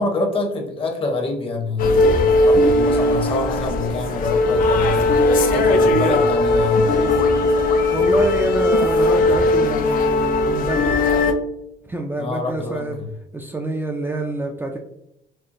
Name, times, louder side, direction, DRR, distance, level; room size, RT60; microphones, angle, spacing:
voice 1, 0.0-7.1 12.2-13.1, left 3 dB, 30° left, 2 dB, 0.9 m, -26 dB
sound 1, 1.8-11.3, left 2 dB, 55° left, 0.5 m, -18 dB
voice 2, 7.9-11.0 11.8-13.0 13.3-14.8, right 2 dB, 10° right, 1 dB, 0.4 m, -27 dB
4.3 x 2.5 x 2.5 m, 0.84 s
cardioid pair, 110°, 17 cm